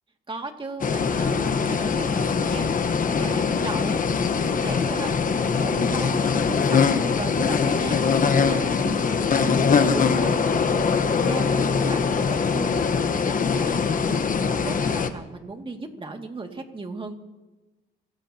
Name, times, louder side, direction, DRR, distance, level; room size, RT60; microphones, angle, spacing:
voice 1, 0.3-17.1, right 3 dB, 25° right, 3 dB, 2.3 m, -37 dB
sound 1, 0.8-15.1, left 5 dB, 45° left, 1.2 m, -22 dB
27.5 x 16.0 x 2.9 m, 1.2 s
cardioid pair, 90°, 20 cm